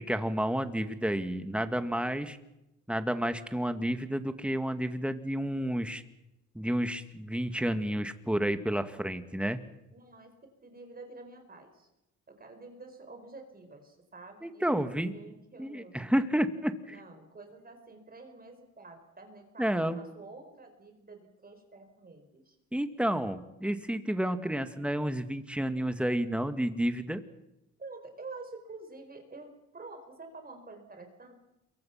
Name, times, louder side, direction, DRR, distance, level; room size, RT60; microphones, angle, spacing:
voice 1, 0.0-2.4 2.9-6.0 6.5-9.6 14.4-15.1 15.6-17.0 19.6-20.0 22.7-27.2, right 1 dB, 5° right, 8 dB, 2.2 m, -30 dB
voice 2, 9.9-10.3 10.6-11.9 12.4-16.0 16.9-22.6 27.8-31.4, right 3 dB, 30° right, 5 dB, 4.8 m, -48 dB
28.0 x 23.5 x 5.9 m, 0.90 s
cardioid pair, 90°, 30 cm